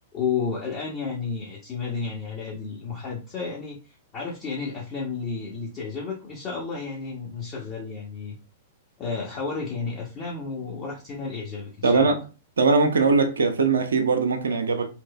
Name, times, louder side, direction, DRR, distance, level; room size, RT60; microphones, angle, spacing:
voice 1, 0.1-3.8 4.1-8.3 9.0-12.2, left 5 dB, 30° left, 0.8 m, -32 dB
voice 2, 11.8-12.2 12.6-14.9, right 4 dB, 65° right, 0.5 m, -21 dB
3.1 x 3.0 x 2.3 m
figure-of-eight pair, 100°, 0 cm